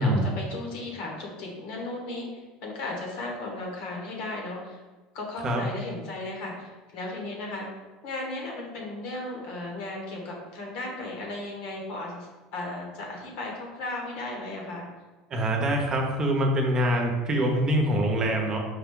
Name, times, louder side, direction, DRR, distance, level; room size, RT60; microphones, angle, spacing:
voice 1, 0.0-4.8 5.1-7.7 8.0-14.9, left 2 dB, 70° left, -1 dB, 1.3 m, -35 dB
voice 2, 15.3-18.6, right 1 dB, 35° right, 1 dB, 0.8 m, -24 dB
5.0 x 2.3 x 3.7 m, 1.3 s
supercardioid pair, 100°, 2 cm